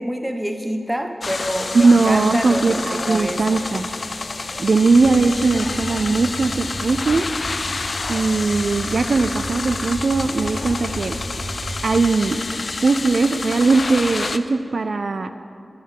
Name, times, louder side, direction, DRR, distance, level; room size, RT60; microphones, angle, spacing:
voice 1, 0.0-3.6, equal, 10° right, 5 dB, 0.9 m, -27 dB
sound 1, 1.2-14.4, left 3 dB, 65° left, 0.3 m, -29 dB
voice 2, 1.7-3.9 4.6-7.3 8.1-11.2 11.8-12.4 12.8-15.3, right 3 dB, 70° right, 9 dB, 0.3 m, -19 dB
sound 2, 4.9-11.9, equal, 55° right, 2.5 m, -34 dB
9.4 x 5.8 x 7.5 m, 2.6 s
cardioid pair, 55°, 0 cm